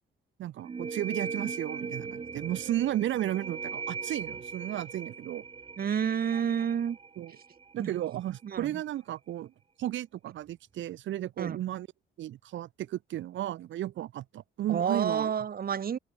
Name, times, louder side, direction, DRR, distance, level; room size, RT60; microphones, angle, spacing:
voice 1, 0.4-5.4 7.2-7.3 7.7-9.5 9.8-11.9 12.2-15.3, right 13 dB, 75° right, 1.1 m, -34 dB
sound 1, 0.6-8.1, right 5 dB, 25° right, 1.0 m, -39 dB
voice 2, 5.8-7.0 7.8-7.9 8.4-8.8 11.4-11.6 14.7-16.0, right 8 dB, 50° right, 1.7 m, -29 dB
cardioid pair, 90°, 20 cm